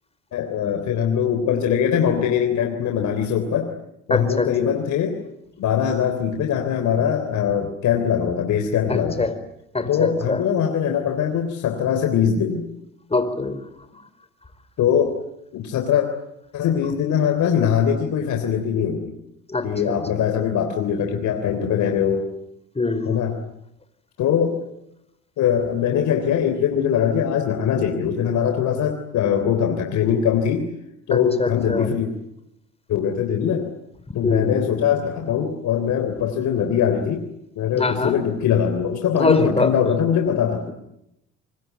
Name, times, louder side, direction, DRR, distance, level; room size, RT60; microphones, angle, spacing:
voice 1, 0.3-3.7 4.1-5.2 5.6-9.3 9.8-12.6 14.8-15.2 15.5-16.1 16.5-19.2 19.6-22.3 23.1-23.4 24.2-24.6 25.4-30.7 31.1-32.1 32.9-33.7 34.1-37.2 37.5-40.7, left 8 dB, 70° left, 5 dB, 3.5 m, -22 dB
voice 2, 4.1-4.5 8.9-9.3 9.7-10.4 13.1-13.6 19.5-20.0 22.7-23.2 31.1-31.9 34.2-34.6 37.8-38.1 39.2-39.7, left 3 dB, 20° left, 11 dB, 4.7 m, -23 dB
25.5 x 23.0 x 9.3 m, 0.82 s
supercardioid pair, 75°, 30 cm